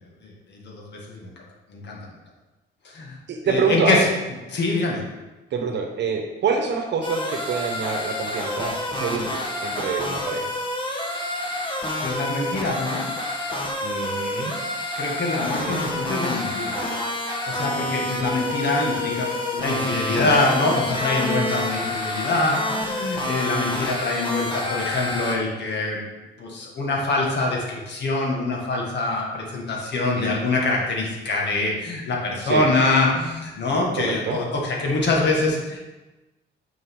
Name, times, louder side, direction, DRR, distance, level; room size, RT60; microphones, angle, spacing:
voice 1, 0.2-1.3 1.7-2.0 2.8-3.2 3.4-4.1 4.5-5.0 12.0-13.2 15.0-16.8 17.5-26.0 26.4-35.8, left 2 dB, 60° left, -2 dB, 2.0 m, -24 dB
voice 2, 3.3-4.1 5.5-10.5 13.8-14.7 15.5-15.9 21.3-21.5 30.2-30.4 32.4-32.7 34.0-34.4, right 5 dB, 60° right, 4 dB, 1.0 m, -27 dB
sound 1, 7.0-25.4, left 1 dB, 25° left, 1.5 m, -28 dB
8.8 x 5.4 x 3.8 m, 1.1 s
cardioid pair, 90°, 20 cm